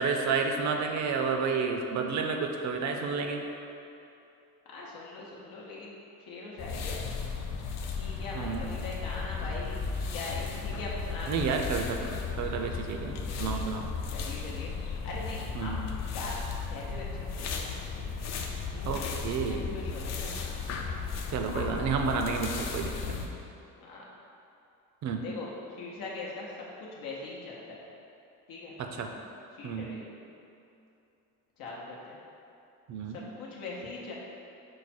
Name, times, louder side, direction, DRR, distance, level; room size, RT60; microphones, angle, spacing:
voice 1, 0.0-3.4 8.3-8.7 11.3-12.1 12.4-13.9 15.5-15.8 18.8-19.7 21.3-23.3 25.0-25.2 28.8-29.1 29.6-29.9 32.9-33.2, right 5 dB, 60° right, 4 dB, 0.5 m, -31 dB
voice 2, 4.7-5.9 6.3-7.0 7.9-9.8 10.1-11.5 13.3-13.7 14.1-14.7 15.0-15.9 16.1-16.3 16.7-18.0 18.7-19.0 19.4-20.6 23.8-24.0 25.2-26.5 26.8-27.8 28.5-28.7 29.6-30.1 31.6-32.2 33.1-34.1, left 2 dB, 90° left, -4 dB, 0.7 m, -41 dB
sound 1, 6.6-23.3, left 5 dB, 55° left, 0.5 m, -35 dB
4.8 x 2.2 x 4.2 m, 2.7 s
cardioid pair, 125°, 33 cm